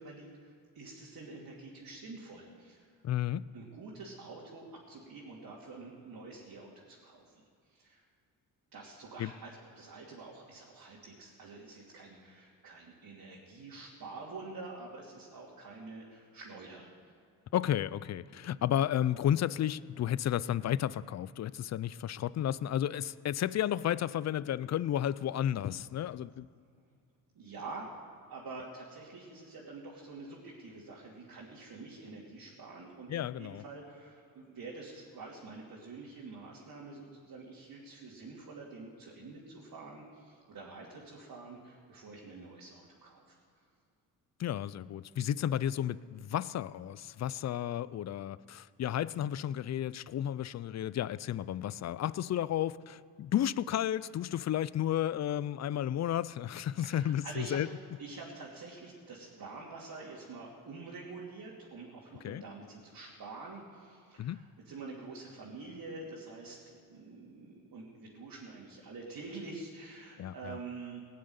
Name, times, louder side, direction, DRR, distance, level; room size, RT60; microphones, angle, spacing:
voice 1, 0.0-2.9 3.5-8.1 8.7-16.9 27.3-27.8 28.3-43.3 56.8-57.6 58.0-71.0, right 3 dB, 60° right, -5 dB, 2.9 m, -47 dB
voice 2, 3.0-3.4 9.2-9.3 17.5-26.5 33.1-33.6 44.4-57.7 62.2-62.4 64.2-64.4 70.2-70.6, left 11 dB, 45° left, 19 dB, 0.5 m, -32 dB
17.5 x 6.6 x 9.7 m, 2.3 s
cardioid pair, 75°, 39 cm